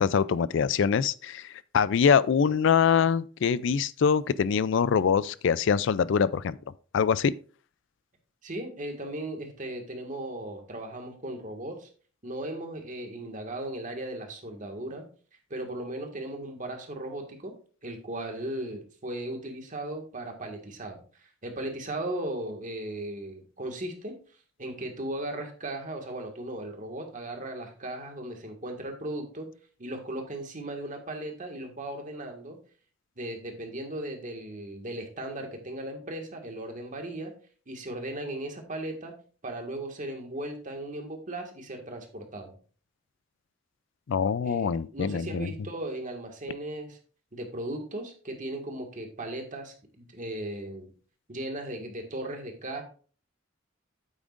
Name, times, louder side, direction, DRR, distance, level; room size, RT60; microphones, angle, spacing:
voice 1, 0.0-6.6 6.9-7.3 44.1-45.5, left 6 dB, 65° left, 0.4 m, -24 dB
voice 2, 8.4-11.9 12.2-15.1 15.5-17.5 17.8-24.1 24.6-29.5 29.8-32.6 33.2-37.3 37.7-39.1 39.4-42.6 44.4-47.0 47.3-50.9 51.3-52.8, right 1 dB, 40° right, 1.8 m, -37 dB
9.0 x 8.6 x 2.5 m
head